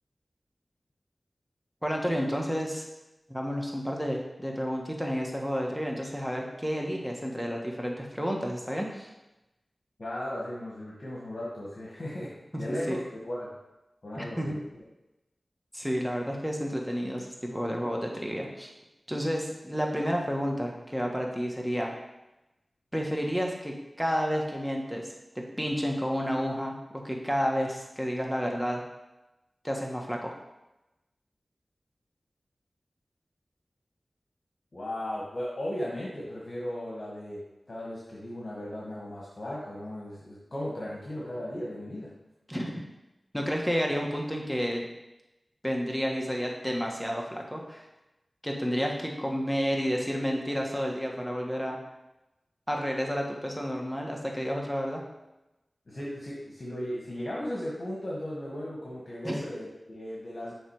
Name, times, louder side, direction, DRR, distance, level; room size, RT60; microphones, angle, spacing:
voice 1, 1.8-2.9 3.3-9.1 12.5-13.0 14.1-14.5 15.7-18.7 19.1-21.9 22.9-28.8 29.6-30.3 42.5-42.9 43.3-44.9 45.6-47.8 48.4-51.8 52.7-55.0 59.2-59.4, equal, ahead, 0 dB, 1.4 m, -31 dB
voice 2, 10.0-13.5 14.0-14.6 34.7-42.1 55.9-60.5, left 1 dB, 55° left, -5 dB, 1.4 m, -36 dB
7.3 x 3.3 x 4.8 m, 0.97 s
cardioid pair, 40°, 0 cm